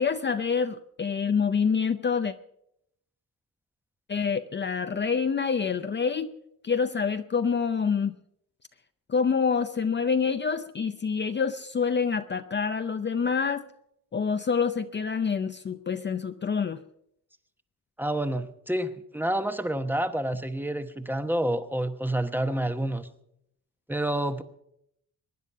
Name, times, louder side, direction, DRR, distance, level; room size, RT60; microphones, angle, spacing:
voice 1, 0.0-2.3 4.1-6.3 6.6-8.1 9.1-13.6 14.1-16.8, left 6 dB, 35° left, 9 dB, 0.6 m, -27 dB
voice 2, 18.0-23.1 23.9-24.4, right 1 dB, 5° right, 9 dB, 1.0 m, -28 dB
23.5 x 10.0 x 5.5 m, 0.75 s
wide cardioid pair, 125°, 33 cm